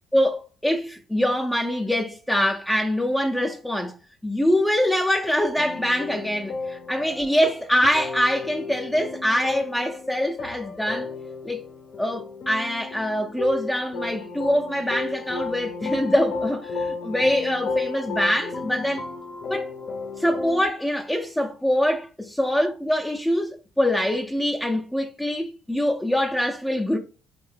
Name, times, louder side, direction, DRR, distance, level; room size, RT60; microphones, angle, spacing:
voice 1, 0.1-4.0 4.2-11.1 11.4-11.7 12.0-19.1 19.5-19.7 20.2-27.0, equal, 5° left, 0.4 m, -24 dB
sound 1, 5.5-20.6, left 4 dB, 60° left, 0.5 m, -33 dB
2.7 x 2.2 x 3.2 m
supercardioid pair, 70°, 0 cm